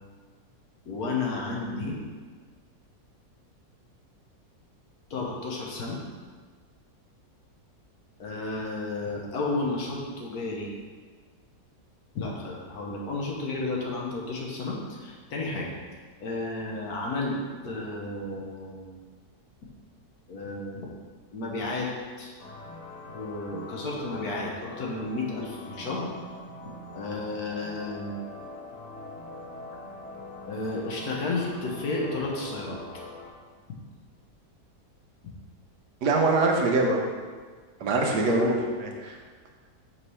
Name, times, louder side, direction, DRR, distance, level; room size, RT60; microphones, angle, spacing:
voice 1, 0.9-2.0 5.1-6.0 8.2-10.7 12.1-15.8 16.2-17.4 17.6-19.0 20.3-20.8 21.3-21.9 22.2-22.3 23.1-26.1 26.9-28.1 30.5-32.8 38.3-38.5, left 3 dB, 70° left, -2 dB, 1.5 m, -32 dB
sound 1, 22.4-33.3, left 2 dB, 50° left, 1.1 m, -43 dB
voice 2, 36.0-37.0 37.8-38.5 38.8-39.2, right 3 dB, 85° right, 1 dB, 1.4 m, -23 dB
5.7 x 3.2 x 5.5 m, 1.6 s
omnidirectional pair, 1.7 m